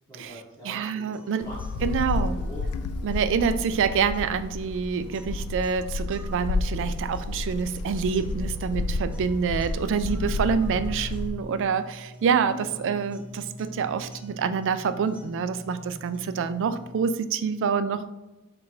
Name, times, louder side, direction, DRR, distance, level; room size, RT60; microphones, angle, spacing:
voice 1, 0.1-2.8 12.6-12.7, right 1 dB, 15° left, -10 dB, 1.2 m, -44 dB
voice 2, 0.6-1.5 1.8-2.4 3.0-18.1, right 6 dB, 60° right, 11 dB, 0.3 m, -27 dB
sound 1, 1.1-17.1, left 1 dB, 5° right, 0.5 m, -46 dB
Wind, 1.4-11.4, left 3 dB, 80° left, 0.3 m, -31 dB
4.4 x 2.5 x 4.7 m, 1.0 s
head